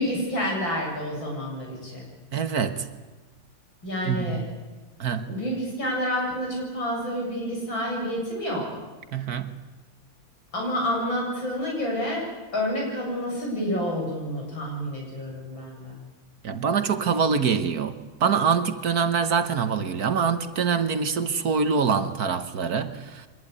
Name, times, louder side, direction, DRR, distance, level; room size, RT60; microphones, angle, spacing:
voice 1, 0.0-2.0 3.8-4.4 5.3-8.6 10.5-12.2 12.5-16.0, equal, 85° left, -1 dB, 8.8 m, -29 dB
voice 2, 2.3-2.9 4.0-4.4 5.0-5.3 9.1-9.5 16.4-23.3, right 6 dB, 55° right, 10 dB, 1.6 m, -25 dB
23.5 x 20.5 x 9.8 m, 1.2 s
omnidirectional pair, 2.1 m